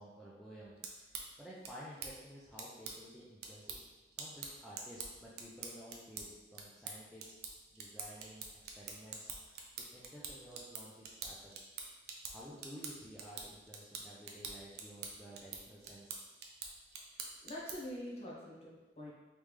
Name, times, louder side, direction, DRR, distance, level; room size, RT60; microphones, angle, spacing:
voice 1, 0.0-3.8 4.2-8.5 8.8-11.7 12.3-16.2, equal, ahead, -7 dB, 0.4 m, -53 dB
sound 1, 0.6-18.0, right 5 dB, 60° right, 0.5 m, -47 dB
voice 2, 17.1-19.1, left 1 dB, 35° left, -5 dB, 0.9 m, -45 dB
3.4 x 3.1 x 3.3 m, 1.2 s
head